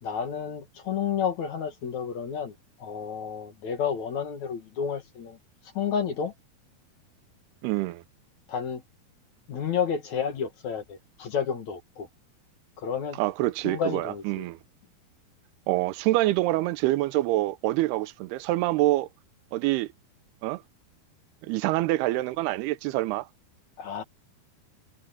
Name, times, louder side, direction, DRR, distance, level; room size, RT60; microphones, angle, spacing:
voice 1, 0.0-5.4 5.7-6.3 8.5-8.8 9.5-12.1 12.8-13.2 13.6-14.5 23.8-24.0, left 7 dB, 50° left, 2.9 m, -31 dB
voice 2, 7.6-8.0 13.2-14.6 15.7-19.1 19.5-19.9 20.4-20.6 21.4-23.3, right 17 dB, 90° right, 2.7 m, -26 dB
omnidirectional pair, 4.6 m